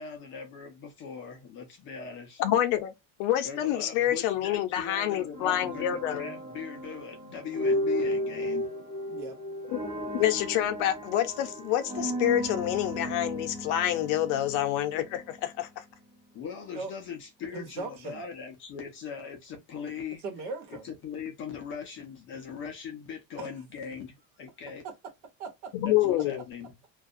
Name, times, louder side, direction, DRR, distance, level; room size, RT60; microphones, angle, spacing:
voice 1, 0.0-2.4 3.4-8.7 16.3-20.2 20.7-24.8 25.8-26.7, left 6 dB, 30° left, 0.4 m, -40 dB
voice 2, 2.4-2.9 3.2-6.3 9.7-9.8 10.1-15.8 25.7-26.4, left 12 dB, 65° left, 0.7 m, -27 dB
sound 1, 5.3-15.4, equal, 15° right, 0.9 m, -34 dB
voice 3, 9.1-9.4 10.1-10.3 16.7-16.9 17.5-18.2 20.2-20.9 23.4-23.5 25.4-25.7, right 4 dB, 60° right, 1.2 m, -38 dB
2.4 x 2.2 x 2.6 m
cardioid pair, 175°, 43 cm